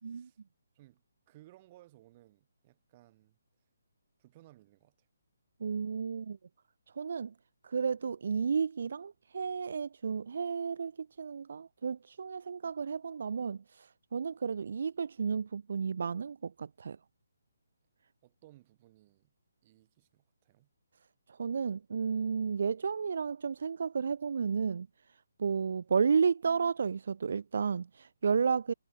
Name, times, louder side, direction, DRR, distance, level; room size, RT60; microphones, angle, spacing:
voice 1, 0.0-0.4 0.7-3.4 4.2-5.1 18.2-19.3 19.6-20.7, right 16 dB, 25° right, 6.2 m, -60 dB
voice 2, 5.6-6.4 7.0-7.3 7.6-17.0 21.4-24.9 25.4-28.7, right 6 dB, 60° right, 0.3 m, -32 dB
hypercardioid pair, 165°, 0 cm